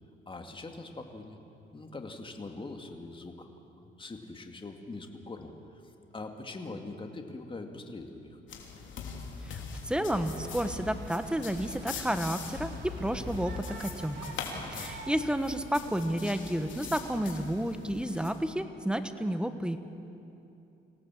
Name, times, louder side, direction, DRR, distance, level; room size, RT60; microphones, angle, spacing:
voice 1, 0.3-1.4 1.7-3.5 3.8-5.5 6.1-8.4 14.5-14.9, left 3 dB, 25° left, 4 dB, 2.3 m, -42 dB
sound 1, 8.5-18.3, left 4 dB, 70° left, 3.3 m, -42 dB
voice 2, 9.5-12.7 13.0-14.3 14.7-19.8, right 1 dB, 5° right, 9 dB, 1.3 m, -31 dB
sound 2, 10.1-15.1, right 3 dB, 65° right, 3.2 m, -48 dB
25.5 x 17.5 x 7.7 m, 2.8 s
cardioid pair, 90°, 20 cm